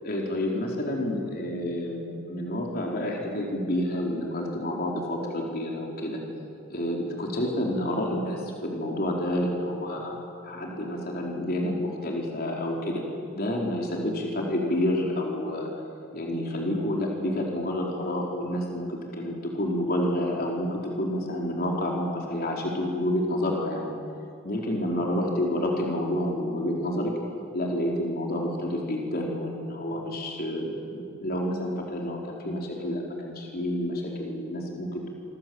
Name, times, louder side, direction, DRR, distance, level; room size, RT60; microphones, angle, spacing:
voice 1, 0.0-6.2 6.7-13.0 13.3-15.7 16.1-23.9 24.4-27.1 27.5-35.1, left 1 dB, 45° left, -1 dB, 4.3 m, -29 dB
27.5 x 24.5 x 8.0 m, 2.6 s
head